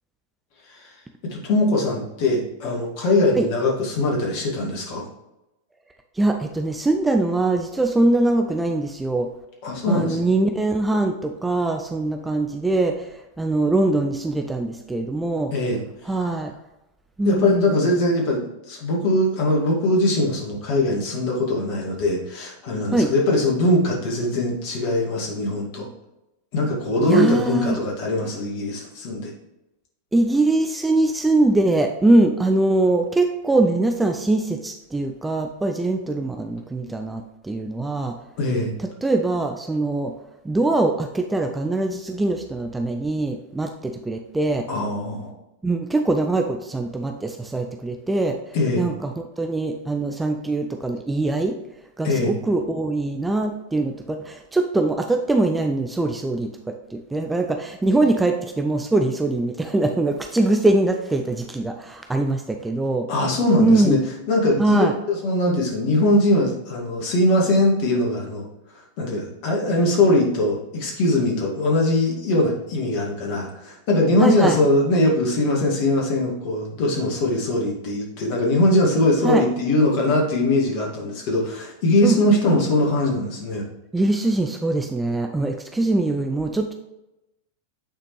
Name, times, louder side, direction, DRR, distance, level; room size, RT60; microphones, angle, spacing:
voice 1, 1.2-5.1 9.6-10.3 15.5-15.8 17.3-25.9 26.5-29.3 38.4-38.7 44.7-45.3 48.5-48.9 52.0-52.3 63.1-64.0 64.3-68.5 68.7-83.6, left 1 dB, 45° left, -1 dB, 2.2 m, -21 dB
voice 2, 6.2-9.3 9.9-15.5 16.1-16.5 17.2-17.8 22.9-23.1 27.0-27.8 30.1-38.1 39.0-40.1 40.4-44.7 45.6-48.4 48.8-51.5 52.0-63.1 63.6-64.0 64.6-64.9 74.2-74.6 79.2-79.5 82.0-82.2 83.9-86.7, right 2 dB, 10° right, 4 dB, 0.5 m, -22 dB
8.8 x 4.1 x 3.2 m, 0.92 s
figure-of-eight pair, 90°, 0 cm